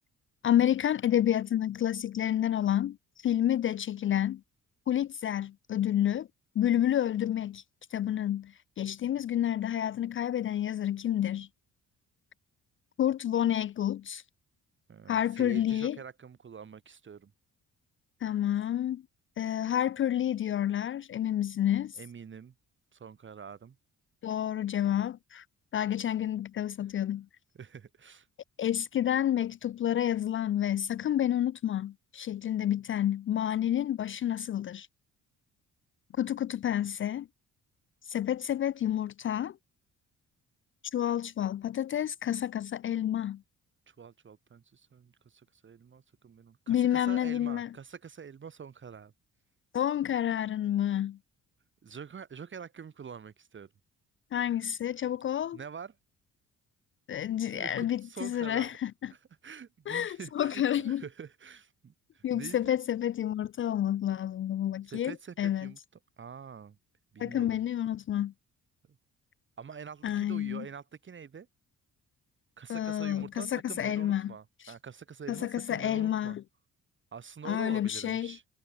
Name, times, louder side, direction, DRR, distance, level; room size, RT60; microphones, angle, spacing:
voice 1, 0.4-4.4 4.9-6.3 6.6-7.6 7.9-11.5 13.0-14.2 15.1-16.0 18.2-19.0 19.4-22.0 24.2-25.4 25.7-27.3 28.6-34.9 36.2-37.3 38.1-39.6 40.9-43.4 46.7-47.7 49.7-51.2 54.3-55.6 57.1-59.1 59.9-61.0 62.2-65.7 67.2-68.3 70.0-70.7 72.7-74.3 74.6-74.7 75.3-76.4 77.4-78.4, left 11 dB, 40° left, 0.4 m, -29 dB
voice 2, 14.9-17.3 22.0-22.5 22.9-23.8 27.6-28.3 43.9-49.1 51.8-53.7 55.0-55.1 55.5-55.9 57.5-58.7 59.1-62.6 64.9-65.8 66.2-66.8 67.1-67.6 69.6-71.5 72.6-76.4 77.1-78.4, right 6 dB, 40° right, 1.8 m, -46 dB
cardioid pair, 90°, 30 cm